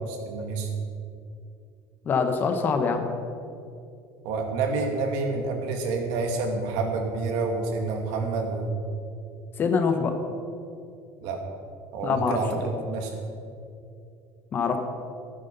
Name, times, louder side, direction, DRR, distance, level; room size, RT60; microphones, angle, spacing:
voice 1, 0.3-0.7 4.2-8.7 11.2-11.4 11.9-13.1, right 3 dB, 70° right, 3 dB, 2.4 m, -28 dB
voice 2, 2.0-3.0 9.6-10.1 12.0-12.7 14.5-14.8, left 5 dB, 30° left, 6 dB, 1.1 m, -24 dB
13.5 x 12.0 x 5.5 m, 2.5 s
cardioid pair, 175°, 7 cm